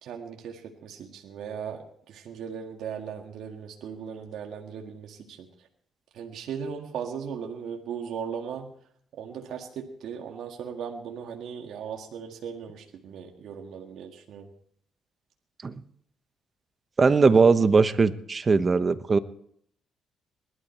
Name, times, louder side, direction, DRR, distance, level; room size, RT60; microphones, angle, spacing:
voice 1, 0.0-5.5 6.1-8.7 9.2-14.5, right 7 dB, 75° right, 2 dB, 1.9 m, -37 dB
voice 2, 17.0-19.2, right 4 dB, 35° right, 11 dB, 1.1 m, -20 dB
20.0 x 12.5 x 4.4 m, 0.66 s
cardioid pair, 90°, 0 cm